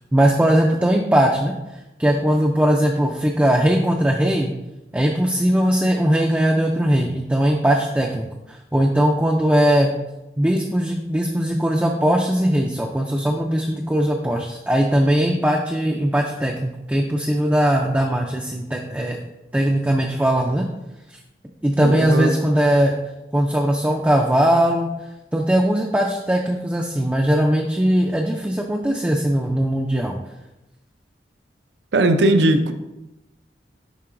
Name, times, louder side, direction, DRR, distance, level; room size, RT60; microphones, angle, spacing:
voice 1, 0.1-1.5 2.0-4.5 4.9-9.9 10.4-19.2 19.5-20.6 21.6-22.9 23.3-24.9 25.3-30.2, equal, 10° right, 0.3 m, -19 dB
voice 2, 21.8-22.3 31.9-32.7, right 2 dB, 85° right, 0.5 m, -18 dB
10.5 x 3.8 x 2.5 m
head